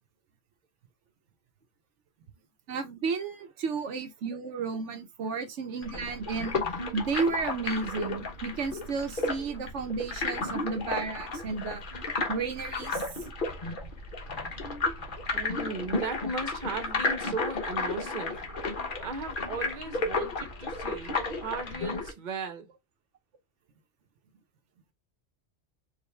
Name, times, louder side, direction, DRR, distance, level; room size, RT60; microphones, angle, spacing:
voice 1, 2.7-6.6 6.9-11.8 12.3-13.0, right 4 dB, 85° right, 1.1 m, -32 dB
sound 1, 5.8-22.1, left 3 dB, 50° left, 1.2 m, -33 dB
voice 2, 15.3-18.4 19.0-22.7, right 3 dB, 45° right, 0.9 m, -37 dB
4.9 x 2.6 x 3.2 m
omnidirectional pair, 1.2 m